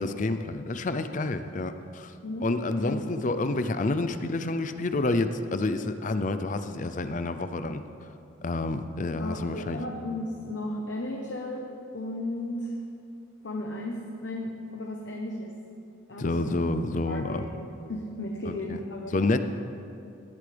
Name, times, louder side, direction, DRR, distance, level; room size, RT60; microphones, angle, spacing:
voice 1, 0.0-2.1 2.4-7.8 8.4-9.8 16.2-17.5 18.5-18.8 19.1-19.4, left 2 dB, 40° left, 10 dB, 0.5 m, -29 dB
voice 2, 9.2-12.7 13.4-15.5 16.1-16.6 17.0-19.1, left 1 dB, 65° left, 0 dB, 1.0 m, -35 dB
18.5 x 12.0 x 3.4 m, 2.6 s
head